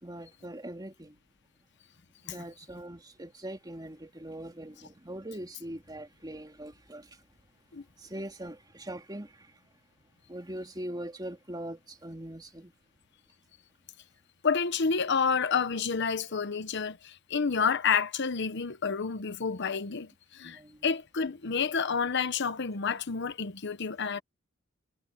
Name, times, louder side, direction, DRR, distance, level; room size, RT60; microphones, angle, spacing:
voice 1, 0.0-1.2 2.2-7.2 8.0-9.5 10.3-12.7 20.4-20.9, right 1 dB, 20° right, 3.2 m, -41 dB
voice 2, 14.4-24.2, left 5 dB, 60° left, 0.9 m, -29 dB
head